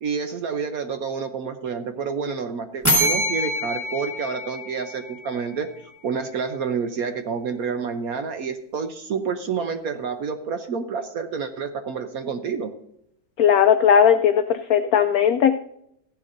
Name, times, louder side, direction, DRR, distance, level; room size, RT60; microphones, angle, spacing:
voice 1, 0.0-5.7 6.0-12.7, right 6 dB, 65° right, 7 dB, 1.0 m, -28 dB
sound 1, 2.8-5.6, equal, 10° right, 2.3 m, -25 dB
voice 2, 13.4-15.5, left 8 dB, 85° left, 9 dB, 0.7 m, -17 dB
14.5 x 11.0 x 2.6 m, 0.75 s
omnidirectional pair, 2.1 m